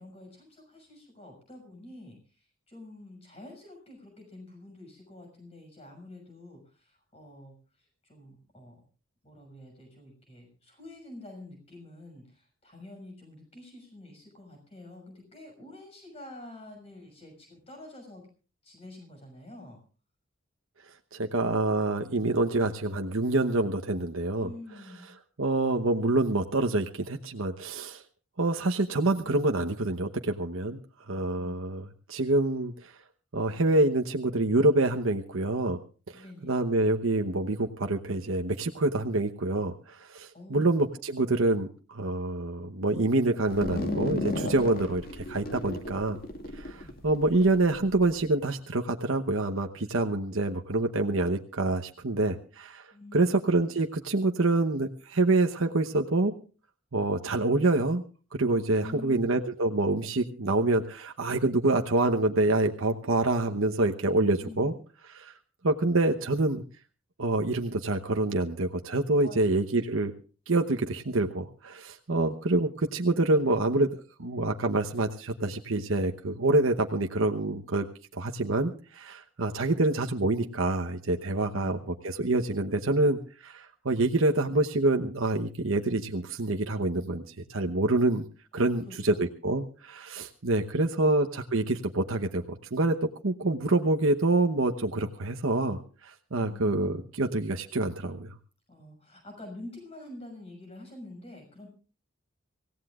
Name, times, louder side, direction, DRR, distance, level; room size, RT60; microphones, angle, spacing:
voice 1, 0.0-7.6 8.0-8.8 9.2-18.2 18.6-19.8 24.4-25.1 31.4-31.6 36.1-36.5 40.3-40.7 46.7-47.0 52.9-53.4 58.7-59.3 64.4-64.7 69.2-69.4 72.2-72.6 81.4-81.7 88.6-89.3 96.3-96.8 98.7-101.7, left 1 dB, 30° left, 3 dB, 6.5 m, -47 dB
voice 2, 21.1-24.5 25.4-28.0 28.4-30.8 31.1-33.0 33.3-35.8 36.1-46.2 46.5-56.3 56.9-58.0 58.3-64.7 65.1-65.3 65.6-66.6 67.2-70.1 70.5-77.9 78.1-88.2 88.5-92.9 93.2-98.3, right 2 dB, 75° right, 4 dB, 1.0 m, -26 dB
sound 1, 43.5-48.1, left 2 dB, 45° left, 2.3 m, -34 dB
25.5 x 17.0 x 2.4 m, 0.36 s
head